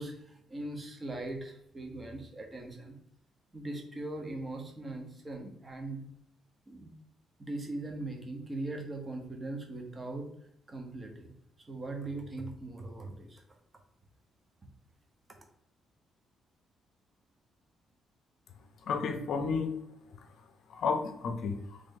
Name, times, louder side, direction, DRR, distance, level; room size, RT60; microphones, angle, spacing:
voice 1, 0.0-3.0 3.5-6.0 6.7-6.9 7.4-10.3 10.7-11.3 11.7-13.4, right 2 dB, 25° right, 2 dB, 0.8 m, -40 dB
voice 2, 18.9-19.7 20.7-21.8, left 5 dB, 70° left, 8 dB, 0.5 m, -32 dB
3.2 x 2.6 x 3.7 m, 0.76 s
cardioid pair, 90°, 0 cm